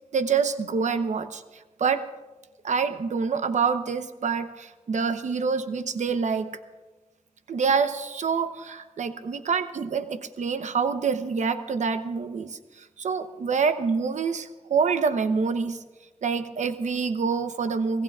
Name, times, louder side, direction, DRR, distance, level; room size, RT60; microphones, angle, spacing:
voice 1, 0.1-1.4 1.8-2.1 2.6-6.5 7.5-15.8 16.2-18.0, right 5 dB, 75° right, 10 dB, 0.9 m, -26 dB
24.5 x 18.5 x 2.4 m, 1.2 s
cardioid pair, 65°, 12 cm